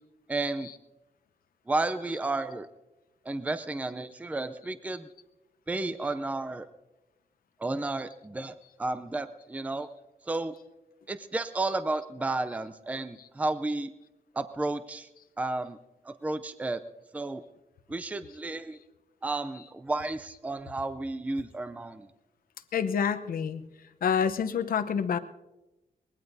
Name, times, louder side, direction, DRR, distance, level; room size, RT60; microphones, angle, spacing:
voice 1, 0.3-0.7 1.7-2.7 3.3-5.1 5.7-6.7 7.6-9.9 10.3-10.5 11.1-13.9 14.3-15.1 15.4-15.8 16.1-16.8 17.1-17.4 17.9-18.8 19.2-22.1, right 2 dB, 10° right, 11 dB, 0.5 m, -32 dB
voice 2, 22.7-23.7 24.0-25.2, left 7 dB, 75° left, 10 dB, 0.8 m, -27 dB
23.0 x 20.5 x 2.7 m, 1.0 s
wide cardioid pair, 150°, 15 cm